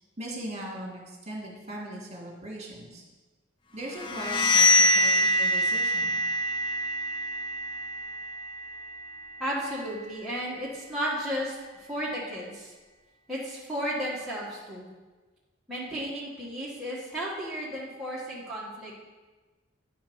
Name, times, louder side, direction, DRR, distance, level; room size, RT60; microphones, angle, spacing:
voice 1, 0.2-3.0 3.7-6.2, right 1 dB, 35° right, -3 dB, 2.0 m, -39 dB
sound 1, 3.9-9.6, left 1 dB, 25° left, 0.4 m, -25 dB
voice 2, 9.4-12.7 13.3-14.9 15.7-19.0, equal, ahead, -8 dB, 1.5 m, -34 dB
9.4 x 5.0 x 5.5 m, 1.3 s
head